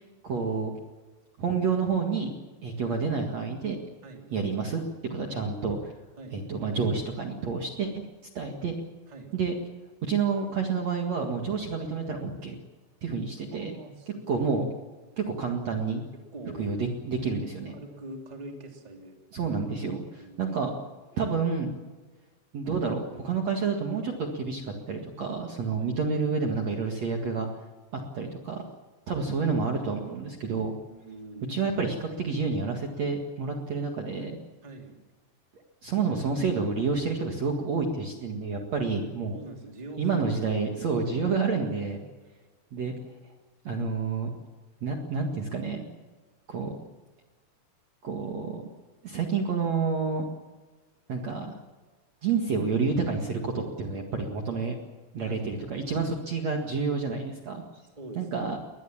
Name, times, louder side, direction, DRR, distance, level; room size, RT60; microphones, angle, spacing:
voice 1, 0.2-0.7 1.4-2.3 2.6-3.8 4.3-4.8 5.1-5.9 6.3-7.9 8.3-8.8 9.3-9.5 10.0-12.5 13.0-13.7 14.3-14.6 15.2-16.0 16.6-17.7 19.3-20.7 21.1-21.8 22.5-27.5 27.9-28.6 29.1-30.7 31.5-34.4 35.8-39.4 40.0-42.0 42.7-42.9 43.6-44.3 44.8-45.9 46.5-46.8 48.0-48.6 49.0-50.2 51.1-51.5 52.2-54.8 55.1-57.6 58.2-58.6, right 5 dB, 50° right, 2 dB, 2.6 m, -29 dB
voice 2, 4.0-4.3 6.2-6.4 9.1-9.3 13.5-14.5 16.1-16.7 17.7-19.2 19.9-20.4 25.8-25.9 30.9-31.6 34.6-35.0 39.3-40.2 55.2-55.5 58.0-58.3, right 1 dB, 10° right, 2 dB, 2.4 m, -44 dB
22.0 x 20.0 x 7.3 m, 1.3 s
omnidirectional pair, 4.8 m